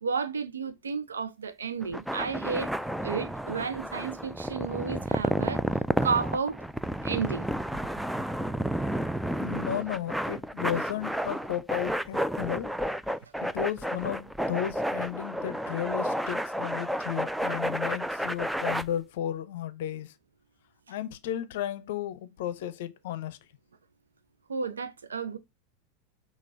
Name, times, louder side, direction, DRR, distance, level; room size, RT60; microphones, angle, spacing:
voice 1, 0.0-2.7 3.0-5.6 6.0-6.6 7.0-7.5 24.5-25.4, right 5 dB, 80° right, 0.6 m, -32 dB
sound 1, 1.8-18.8, equal, ahead, 0.3 m, -31 dB
voice 2, 9.4-12.7 13.4-20.1 20.9-23.4, left 11 dB, 60° left, 0.6 m, -34 dB
6.0 x 2.4 x 3.3 m
figure-of-eight pair, 85°, 0 cm